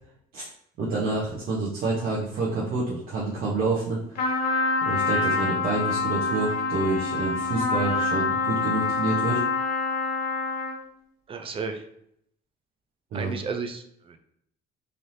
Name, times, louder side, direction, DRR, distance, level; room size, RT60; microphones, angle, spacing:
voice 1, 0.8-9.4 13.1-13.3, right 3 dB, 60° right, -6 dB, 0.8 m, -28 dB
Trumpet, 4.2-10.9, left 4 dB, 65° left, 0.9 m, -26 dB
voice 2, 11.3-11.8 13.1-14.2, right 5 dB, 35° right, 6 dB, 0.4 m, -33 dB
3.3 x 2.6 x 2.6 m, 0.72 s
cardioid pair, 110°, 17 cm